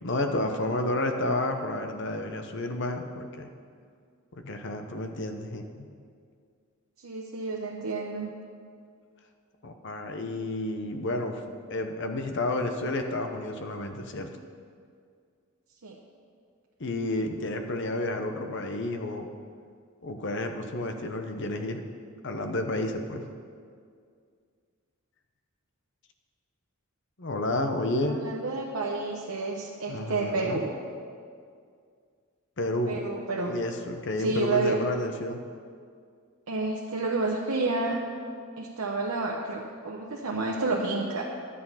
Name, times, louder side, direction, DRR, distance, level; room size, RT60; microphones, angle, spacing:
voice 1, 0.0-3.5 4.3-5.9 9.6-14.3 16.8-19.3 20.0-21.8 22.2-23.2 27.2-28.2 29.9-30.6 32.6-33.0 33.5-35.4, left 1 dB, 55° left, 5 dB, 0.9 m, -31 dB
voice 2, 7.0-8.3 15.8-16.0 28.1-30.7 32.9-33.6 34.2-34.8 36.5-38.0 38.6-41.2, right 3 dB, 90° right, -2 dB, 0.9 m, -30 dB
11.0 x 8.5 x 5.7 m, 2.2 s
head